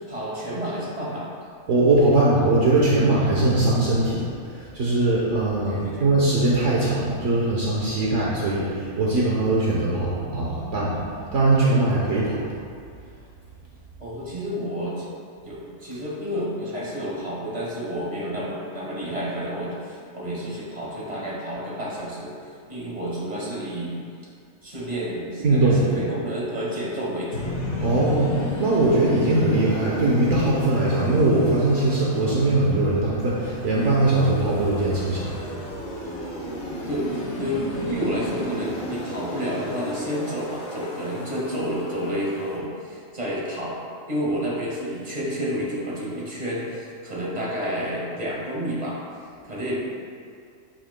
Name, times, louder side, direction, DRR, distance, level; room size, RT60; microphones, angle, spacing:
voice 1, 0.1-1.3 5.7-6.1 14.0-15.1 15.4-22.3 22.7-24.0 24.6-27.5 36.9-43.8 44.1-49.0 49.4-49.8, equal, 30° right, -6 dB, 1.8 m, -30 dB
voice 2, 1.7-11.0 11.3-12.4 25.4-25.8 27.8-35.4, right 2 dB, 65° right, -5 dB, 1.3 m, -21 dB
sound 1, 27.3-42.6, equal, 55° left, 1.4 m, -34 dB
11.5 x 6.3 x 2.2 m, 2.3 s
omnidirectional pair, 1.4 m